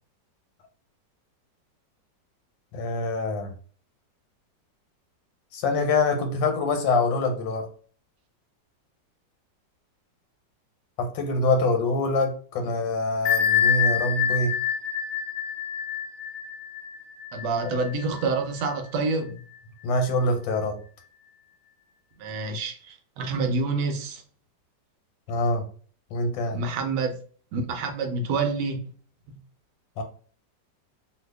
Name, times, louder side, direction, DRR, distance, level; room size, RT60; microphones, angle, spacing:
voice 1, 2.7-3.5 5.5-7.7 11.0-14.6 17.6-17.7 19.8-20.8 25.3-25.7 26.1-26.6 30.0-30.1, left 2 dB, 90° left, 1.5 m, -25 dB
Bell, 13.2-18.7, left 8 dB, 35° left, 1.1 m, -26 dB
voice 2, 17.3-19.4 22.2-24.2 26.5-27.1 27.5-28.8 29.3-29.4, right 3 dB, 75° right, 1.2 m, -27 dB
2.8 x 2.7 x 3.3 m
omnidirectional pair, 2.0 m